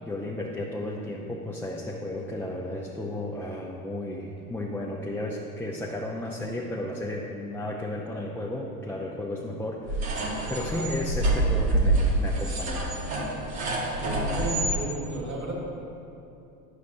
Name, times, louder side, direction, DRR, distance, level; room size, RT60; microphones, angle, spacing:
voice 1, 0.0-10.2 10.5-12.9, left 1 dB, 5° left, -4 dB, 0.4 m, -33 dB
sound 1, 9.9-14.8, right 2 dB, 75° right, 1.4 m, -26 dB
voice 2, 13.7-15.5, right 1 dB, 40° right, -2 dB, 1.7 m, -34 dB
9.4 x 6.6 x 2.6 m, 2.8 s
hypercardioid pair, 80°, 43 cm